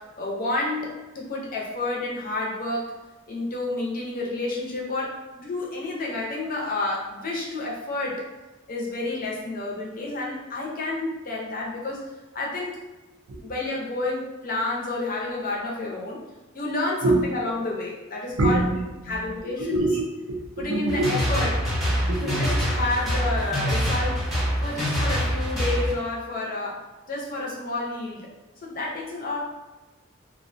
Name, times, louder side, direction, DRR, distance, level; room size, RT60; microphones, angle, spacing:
voice 1, 0.0-3.0 3.3-8.3 8.7-12.8 13.4-16.2 16.5-18.6 19.1-19.9 20.6-21.7 22.2-28.2 28.6-29.4, left 2 dB, 45° left, -2 dB, 0.5 m, -30 dB
voice 2, 17.0-17.4 18.4-21.1 22.0-22.6, right 2 dB, 90° right, -2 dB, 0.5 m, -25 dB
sound 1, 20.9-25.9, equal, ahead, 0.8 m, -25 dB
2.4 x 2.1 x 2.5 m, 1.1 s
head